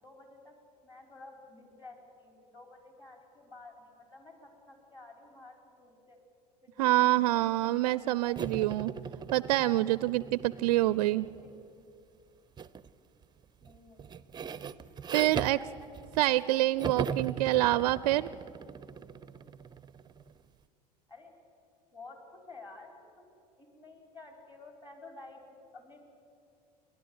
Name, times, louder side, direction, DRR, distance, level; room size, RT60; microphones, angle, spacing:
voice 1, 0.0-0.5 0.8-6.2 6.6-9.3 11.4-11.5 13.6-14.1 15.4-15.9 16.2-16.8 17.5-17.7 21.1-21.3 21.9-23.3 23.6-26.0, left 3 dB, 20° left, 3 dB, 4.9 m, -52 dB
voice 2, 6.8-8.9 9.3-11.3 15.1-15.6 16.2-18.3, right 16 dB, 65° right, 19 dB, 0.4 m, -26 dB
sound 1, 8.4-11.7 12.6-12.9 13.2-16.5 16.8-20.3, right 7 dB, 20° right, 0.6 m, -39 dB
30.0 x 11.5 x 8.0 m, 2.6 s
figure-of-eight pair, 70°, 21 cm